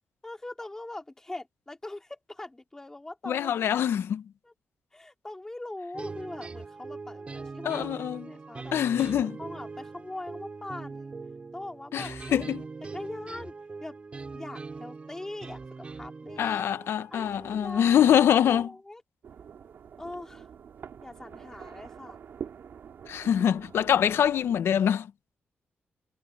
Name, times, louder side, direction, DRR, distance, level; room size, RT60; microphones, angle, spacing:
voice 1, 0.2-3.9 4.4-4.5 4.9-7.9 8.2-9.0 9.4-11.1 11.5-12.4 12.8-13.5 13.8-13.9 14.3-16.6 17.1-19.0 20.0-20.5 21.0-22.2, left 2 dB, 15° left, 3.4 m, -42 dB
voice 2, 3.3-4.2 7.6-8.3 8.7-9.4 11.9-12.6 16.4-18.7 23.1-25.1, left 9 dB, 85° left, 0.9 m, -24 dB
sound 1, 5.9-18.7, right 4 dB, 30° right, 4.7 m, -42 dB
sound 2, 19.2-24.6, right 7 dB, 65° right, 3.0 m, -45 dB
wide cardioid pair, 165°, 4 cm